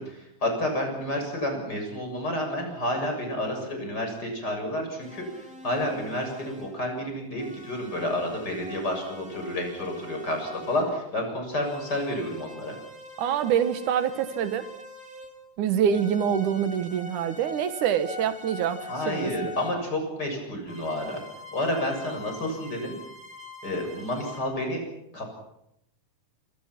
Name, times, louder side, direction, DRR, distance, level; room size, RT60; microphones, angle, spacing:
voice 1, 0.0-12.7 18.9-21.2 21.5-23.0 23.6-24.8 25.1-25.3, left 1 dB, 30° left, 3 dB, 7.7 m, -30 dB
sound 1, 5.0-6.9 7.4-10.9 11.6-15.5 15.9-19.8 20.7-24.4, left 1 dB, ahead, 3.6 m, -44 dB
voice 2, 13.2-14.7 15.6-19.3, right 8 dB, 85° right, 10 dB, 2.9 m, -25 dB
27.0 x 25.0 x 6.0 m, 0.80 s
omnidirectional pair, 3.5 m